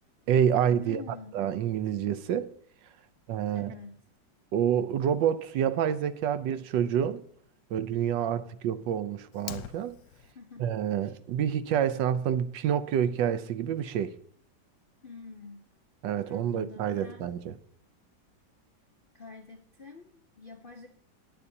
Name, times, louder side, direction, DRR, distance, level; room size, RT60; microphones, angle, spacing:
voice 1, 0.3-1.0 1.3-2.5 3.3-3.7 4.5-7.2 7.7-10.0 10.6-14.1 16.0-17.6, right 9 dB, 80° right, 1.4 m, -28 dB
voice 2, 0.8-1.4 3.5-4.0 10.3-10.7 11.0-11.2 15.0-15.7 16.3-17.4 19.1-20.9, left 4 dB, 55° left, 0.6 m, -47 dB
Fire, 9.3-10.3, left 10 dB, 70° left, 1.2 m, -42 dB
20.5 x 8.4 x 2.7 m
omnidirectional pair, 2.0 m